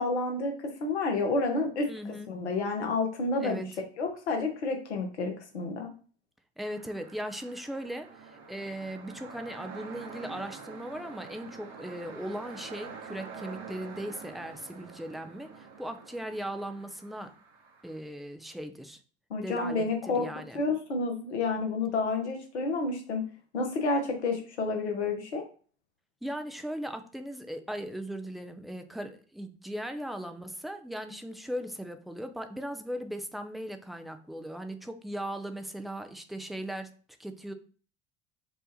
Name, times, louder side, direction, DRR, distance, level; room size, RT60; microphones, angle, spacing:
voice 1, 0.0-1.9 2.3-3.6 4.0-5.9 19.3-20.3 20.5-23.2 23.5-25.4, left 3 dB, 75° left, 3 dB, 1.0 m, -30 dB
voice 2, 1.8-2.3 3.4-3.7 6.6-17.3 17.8-19.0 19.4-20.6 26.2-36.9 37.2-37.5, right 1 dB, ahead, 7 dB, 0.3 m, -38 dB
sound 1, 6.6-18.0, right 5 dB, 50° right, 1.0 m, -47 dB
4.7 x 2.4 x 2.7 m, 0.40 s
figure-of-eight pair, 70°, 34 cm